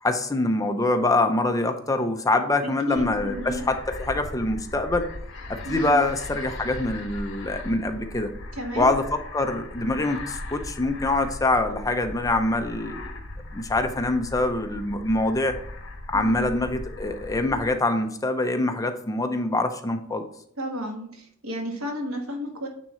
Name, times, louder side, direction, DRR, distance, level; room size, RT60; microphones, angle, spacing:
voice 1, 0.0-5.1 5.5-8.3 8.8-13.1 13.5-15.6 16.1-20.2, left 2 dB, 15° left, 6 dB, 0.6 m, -24 dB
voice 2, 2.6-3.6 5.6-6.0 8.6-8.9 16.1-16.6 20.6-22.7, equal, 90° right, 2 dB, 1.6 m, -32 dB
sound 1, 3.0-17.7, left 2 dB, 65° left, 1.2 m, -38 dB
9.1 x 3.7 x 4.3 m, 0.68 s
head